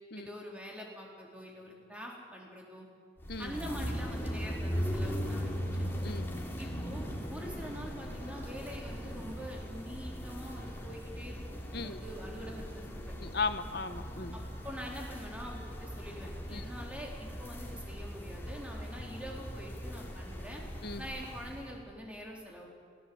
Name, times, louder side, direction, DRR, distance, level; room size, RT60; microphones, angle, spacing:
voice 1, 0.1-2.9 3.4-5.7 6.6-13.1 14.3-20.6 21.0-22.8, equal, 5° right, -1 dB, 4.3 m, -45 dB
sound 1, 3.2-21.7, equal, 15° left, 3.3 m, -39 dB
voice 2, 6.0-6.3 11.7-12.0 13.2-14.4 16.5-16.6 20.8-21.0, left 4 dB, 65° left, 10 dB, 1.3 m, -36 dB
26.5 x 19.5 x 8.1 m, 2.1 s
head